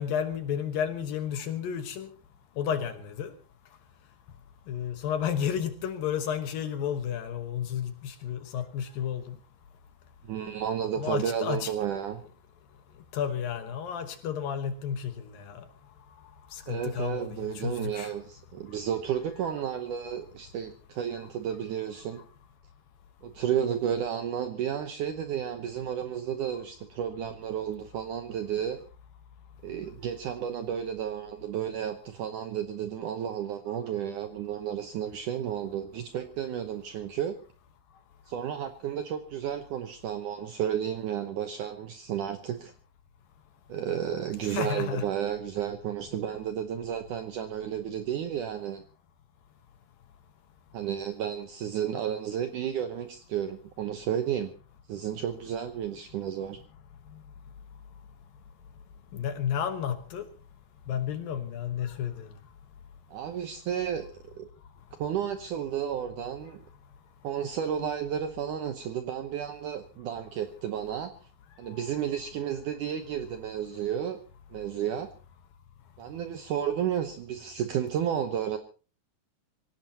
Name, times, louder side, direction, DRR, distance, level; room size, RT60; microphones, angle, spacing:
voice 1, 0.0-2.1 2.6-3.3 4.7-9.4 11.0-11.7 13.1-15.6 16.5-18.1 44.5-45.0 59.1-60.3 60.9-62.3 71.7-71.9, left 8 dB, 65° left, 2.5 m, -32 dB
voice 2, 10.2-12.2 16.7-22.2 23.2-28.8 29.6-37.4 38.3-42.7 43.7-48.8 50.7-54.5 54.9-56.6 63.1-64.5 65.0-66.6 67.2-71.1 71.6-74.2 74.5-75.1 76.0-78.6, right 9 dB, 85° right, 1.8 m, -32 dB
25.0 x 17.0 x 2.9 m
omnidirectional pair, 5.1 m